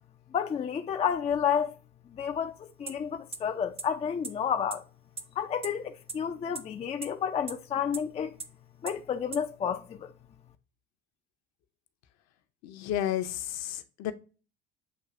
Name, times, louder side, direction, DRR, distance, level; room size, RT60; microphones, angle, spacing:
voice 1, 0.3-1.7 2.1-4.8 5.4-8.3 8.8-10.1, left 8 dB, 20° left, 0.4 m, -30 dB
sound 1, 2.9-3.0 3.3-3.4 3.8-3.9 4.2-4.3 4.7-4.8 5.2-5.3 5.6-5.7 6.1-6.2 6.5-6.6 7.0-7.1 7.5-7.6 7.9-8.0 8.4-8.5 8.9-9.0 9.3-9.4, right 4 dB, 15° right, 0.6 m, -35 dB
voice 2, 12.6-14.1, left 11 dB, 50° left, 0.7 m, -32 dB
7.8 x 2.6 x 2.4 m
hypercardioid pair, 75°, 33 cm